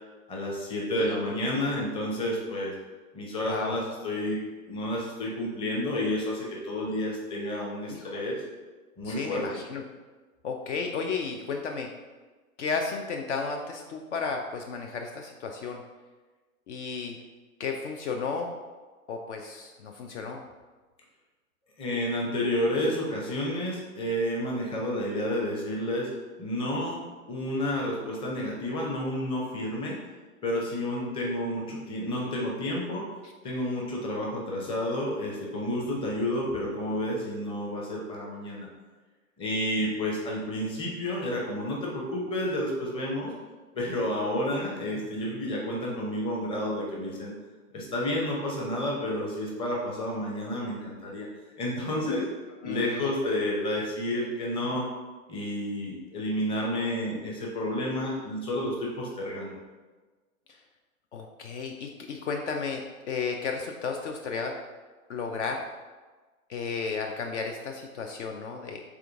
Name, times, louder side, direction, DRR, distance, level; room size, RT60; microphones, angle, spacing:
voice 1, 0.3-2.7 3.1-4.4 4.7-8.4 9.0-9.4 21.8-26.1 26.4-27.0 27.3-30.0 30.4-33.1 33.4-38.7 39.4-43.3 43.7-47.3 47.7-51.3 51.6-52.3 52.6-54.9 55.3-59.6, left 1 dB, 10° left, -3 dB, 0.7 m, -30 dB
voice 2, 0.9-1.4 3.4-3.8 7.9-8.1 9.0-9.8 10.4-11.9 12.6-15.8 16.7-17.2 17.6-18.5 19.1-20.4 52.6-53.1 60.5-60.6 61.1-62.8 63.1-64.6 65.1-65.6 66.5-68.8, left 5 dB, 55° left, 3 dB, 0.5 m, -33 dB
3.7 x 3.4 x 3.5 m, 1.3 s
hypercardioid pair, 120°, 43 cm